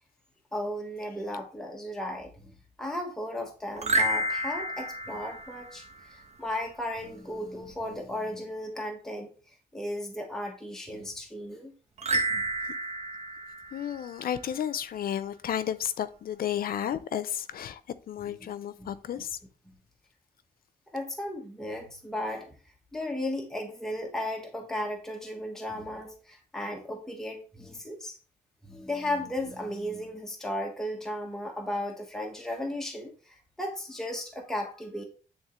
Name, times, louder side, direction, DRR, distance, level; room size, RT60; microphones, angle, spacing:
voice 1, 0.5-2.5 2.8-5.8 6.1-9.3 9.7-11.7 18.4-18.5 18.8-18.9 19.7-19.8 20.9-22.5 22.9-28.2 28.6-35.0, left 1 dB, 5° left, 1.3 m, -35 dB
sound 1, 3.8-6.3 12.0-14.6, right 1 dB, 45° right, 1.2 m, -31 dB
voice 2, 13.7-17.8 18.1-19.4, left 10 dB, 70° left, 0.6 m, -32 dB
9.7 x 3.6 x 3.1 m
cardioid pair, 95°, 16 cm